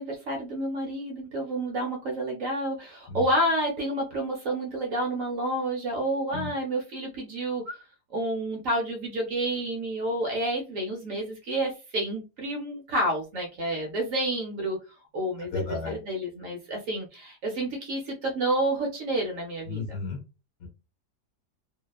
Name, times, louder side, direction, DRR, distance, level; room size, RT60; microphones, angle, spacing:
voice 1, 0.0-7.8 8.1-14.8 15.1-20.0, right 1 dB, 65° right, 1 dB, 0.9 m, -29 dB
voice 2, 15.5-16.0 19.7-20.2 20.6-20.7, left 4 dB, 60° left, 0 dB, 1.3 m, -33 dB
2.8 x 2.1 x 2.3 m, 0.29 s
omnidirectional pair, 1.8 m